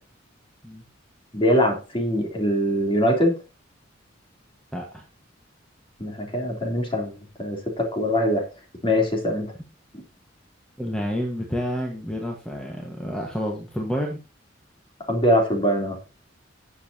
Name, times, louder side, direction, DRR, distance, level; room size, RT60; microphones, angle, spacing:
voice 1, 1.3-3.4 6.0-8.5 8.8-9.5 15.1-16.0, equal, 30° left, 1 dB, 3.5 m, -22 dB
voice 2, 4.7-5.0 10.8-14.2, equal, 5° left, 0 dB, 1.5 m, -29 dB
18.5 x 7.4 x 2.9 m, 0.30 s
head